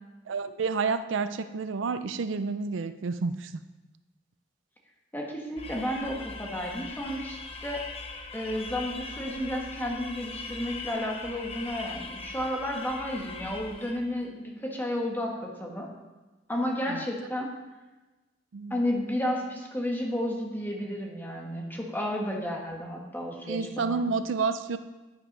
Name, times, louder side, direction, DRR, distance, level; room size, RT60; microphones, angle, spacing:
voice 1, 0.3-3.6 16.9-17.0 18.5-18.8 23.5-24.8, right 4 dB, 85° right, 11 dB, 0.5 m, -30 dB
voice 2, 5.1-7.8 8.3-15.9 16.5-17.5 18.7-24.0, left 1 dB, 10° left, 0 dB, 1.4 m, -32 dB
sound 1, 5.6-14.1, left 3 dB, 30° left, 0.8 m, -41 dB
9.4 x 5.8 x 5.3 m, 1.1 s
head